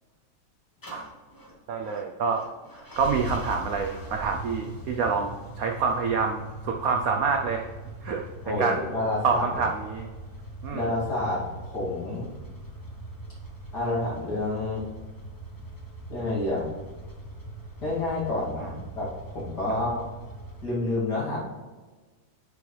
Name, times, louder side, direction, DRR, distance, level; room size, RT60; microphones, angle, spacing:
sound 1, 0.8-20.7, right 1 dB, 20° left, 0.5 m, -41 dB
voice 1, 1.7-2.4 3.0-7.6 8.0-8.2 8.6-8.8 9.2-10.1 10.6-10.9 18.6-18.7 19.7-19.8, right 5 dB, 75° right, 3 dB, 0.8 m, -27 dB
voice 2, 8.4-9.4 10.7-12.3 13.7-14.8 16.1-16.7 17.8-20.0 20.6-21.4, left 2 dB, 55° left, -6 dB, 2.9 m, -29 dB
9.4 x 5.3 x 3.2 m, 1.3 s
omnidirectional pair, 2.2 m